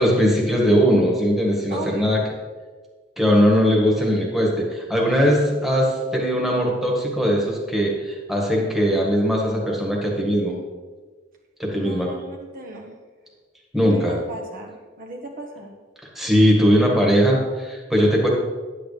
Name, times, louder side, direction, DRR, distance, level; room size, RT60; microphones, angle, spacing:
voice 1, 0.0-2.2 3.2-10.6 11.6-12.1 13.7-14.1 16.1-18.3, equal, ahead, -2 dB, 1.6 m, -20 dB
voice 2, 1.7-2.1 11.8-12.9 13.9-15.7, right 2 dB, 50° right, 0 dB, 1.2 m, -36 dB
9.7 x 9.1 x 3.4 m, 1.4 s
head